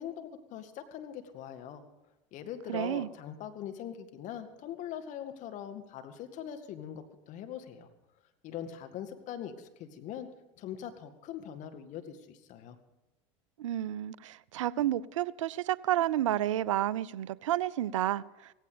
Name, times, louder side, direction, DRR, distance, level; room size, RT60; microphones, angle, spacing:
voice 1, 0.0-1.8 2.3-7.9 8.4-10.3 10.6-12.8, left 9 dB, 50° left, 8 dB, 2.1 m, -42 dB
voice 2, 2.7-3.1 13.6-18.2, right 12 dB, 85° right, 21 dB, 0.5 m, -30 dB
17.0 x 15.5 x 5.2 m, 0.95 s
hypercardioid pair, 85°, 16 cm